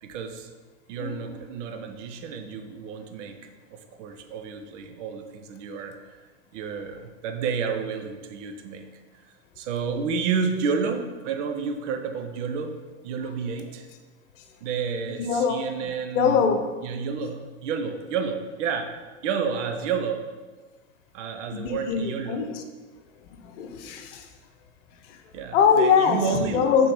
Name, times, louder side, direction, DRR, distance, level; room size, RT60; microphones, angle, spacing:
voice 1, 0.0-0.5 0.9-6.0 6.5-8.8 9.6-12.7 13.0-13.9 14.6-16.4 16.8-18.9 19.2-20.3 21.1-22.4 25.3-26.7, right 6 dB, 65° right, 6 dB, 0.8 m, -30 dB
voice 2, 15.2-15.6 16.1-16.7 21.5-22.6 23.4-24.3 25.1-25.2 25.5-26.9, left 6 dB, 60° left, 7 dB, 0.8 m, -22 dB
5.8 x 3.8 x 5.0 m, 1.3 s
hypercardioid pair, 95°, 40 cm